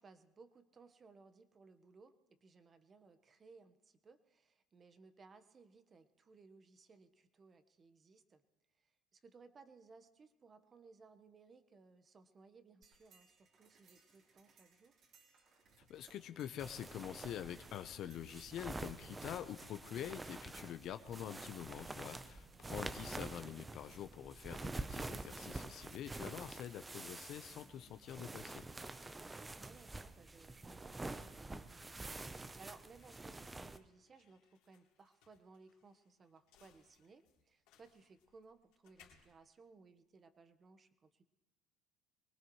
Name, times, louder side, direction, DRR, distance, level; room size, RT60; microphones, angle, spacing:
voice 1, 0.0-8.4 8.8-14.9 22.4-22.8 29.3-41.2, right 4 dB, 35° right, 10 dB, 1.2 m, -62 dB
sound 1, 12.8-27.1, right 3 dB, 50° right, 3.8 m, -66 dB
voice 2, 15.9-28.6, left 10 dB, 60° left, 10 dB, 0.8 m, -46 dB
sound 2, 16.6-33.8, right 2 dB, 15° right, 0.8 m, -47 dB
sound 3, 32.8-40.5, left 8 dB, 80° left, 2.9 m, -71 dB
23.5 x 19.5 x 3.2 m, 1.0 s
supercardioid pair, 85°, 0 cm